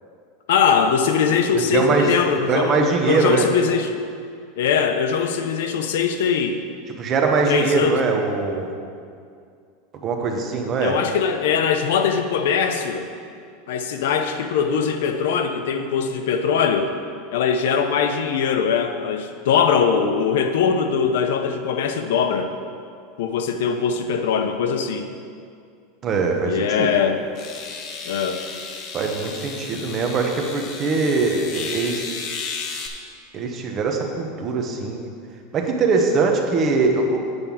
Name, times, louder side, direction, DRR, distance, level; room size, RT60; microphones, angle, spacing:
voice 1, 0.5-3.9 4.6-6.6 7.5-8.0 10.8-13.1 13.7-16.9 17.3-22.5 23.2-25.1 26.5-27.2 28.0-28.4, left 6 dB, 80° left, 7 dB, 0.8 m, -21 dB
voice 2, 1.5-2.1 2.5-3.5 7.0-8.7 10.0-11.0 26.0-26.9 28.9-32.0 33.3-35.1 35.5-37.3, right 4 dB, 25° right, 2 dB, 1.0 m, -22 dB
sound 1, 26.5-26.6 27.3-32.9, left 5 dB, 35° left, 0.9 m, -34 dB
8.1 x 5.4 x 7.2 m, 2.3 s
supercardioid pair, 165°, 0 cm